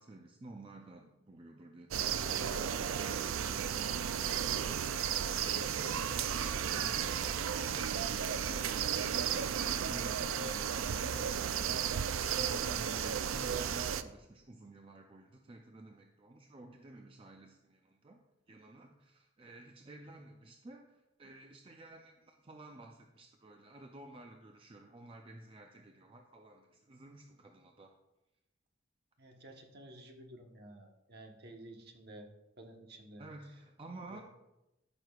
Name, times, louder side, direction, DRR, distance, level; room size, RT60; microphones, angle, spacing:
voice 1, 0.0-2.7 5.3-18.2 18.5-27.9 33.2-34.2, right 2 dB, 25° right, 3 dB, 0.5 m, -52 dB
sound 1, 1.9-14.0, right 8 dB, 85° right, 0.4 m, -34 dB
voice 2, 6.3-6.9 29.2-32.3 32.6-33.3 34.1-34.2, right 1 dB, 50° right, 3 dB, 1.1 m, -53 dB
14.0 x 6.2 x 2.4 m, 0.95 s
head